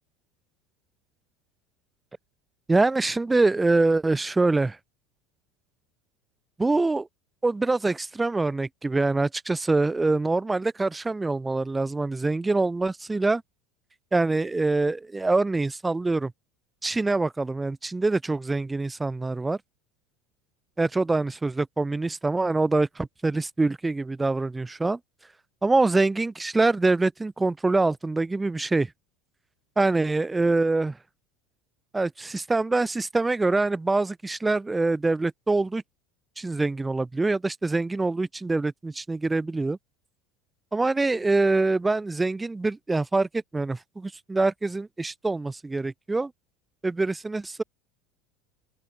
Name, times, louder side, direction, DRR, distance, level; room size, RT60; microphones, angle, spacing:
voice 1, 2.7-4.8 6.6-7.1 7.4-13.4 14.1-16.3 16.8-19.6 20.8-25.0 25.6-28.9 29.8-31.0 31.9-35.8 36.4-39.8 40.7-46.3 46.8-47.6, right 3 dB, 15° right, 0.7 m, -24 dB
open air
figure-of-eight pair, 70°, 0 cm